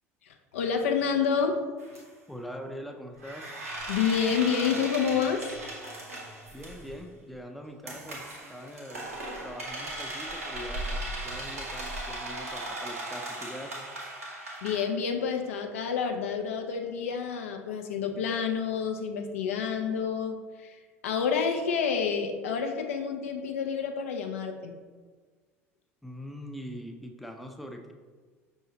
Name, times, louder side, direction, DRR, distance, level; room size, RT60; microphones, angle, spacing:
voice 1, 0.5-1.6 3.9-5.5 14.6-20.8 21.0-24.8, left 6 dB, 70° left, 5 dB, 0.4 m, -28 dB
sound 1, 1.8-2.0 3.2-7.0 7.9-14.8, right 1 dB, 85° right, 0.8 m, -37 dB
voice 2, 2.3-3.5 6.5-9.1 9.4-13.9 26.0-27.9, equal, ahead, 3 dB, 0.4 m, -42 dB
5.4 x 2.7 x 2.7 m, 1.4 s
figure-of-eight pair, 65°, 8 cm